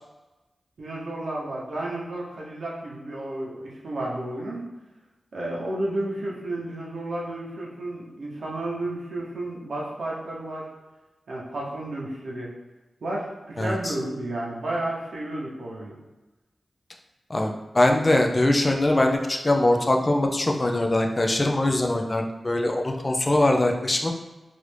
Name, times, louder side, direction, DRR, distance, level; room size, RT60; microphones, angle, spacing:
voice 1, 0.8-4.6 5.3-10.7 11.3-12.5 13.0-15.9, right 1 dB, 80° right, -4 dB, 0.7 m, -32 dB
voice 2, 13.6-13.9 17.3-24.1, left 1 dB, 30° left, 2 dB, 0.4 m, -22 dB
3.1 x 2.5 x 3.2 m, 1.1 s
wide cardioid pair, 75°, 0 cm